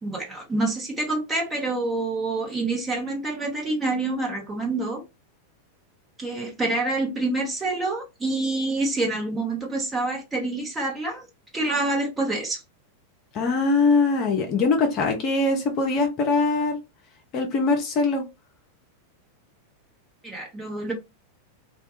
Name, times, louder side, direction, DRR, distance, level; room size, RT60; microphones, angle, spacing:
voice 1, 0.0-5.0 6.2-11.3 11.5-12.6 20.2-20.9, right 2 dB, 15° right, 0.9 m, -27 dB
voice 2, 13.3-16.8 17.3-18.3, left 3 dB, 35° left, 0.6 m, -22 dB
2.2 x 2.1 x 2.9 m
figure-of-eight pair, 90°, 0 cm